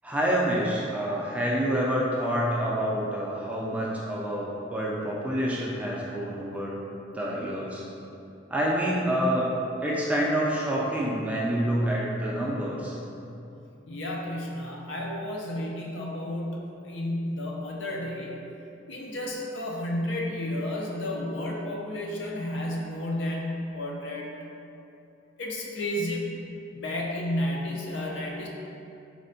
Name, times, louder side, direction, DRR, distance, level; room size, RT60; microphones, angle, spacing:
voice 1, 0.0-6.8 7.1-7.8 8.5-9.5 9.8-12.9, equal, 5° right, -5 dB, 0.3 m, -27 dB
voice 2, 13.9-18.4 18.9-24.3 25.4-28.5, left 1 dB, 70° left, -2 dB, 0.5 m, -32 dB
4.2 x 2.1 x 2.6 m, 2.7 s
head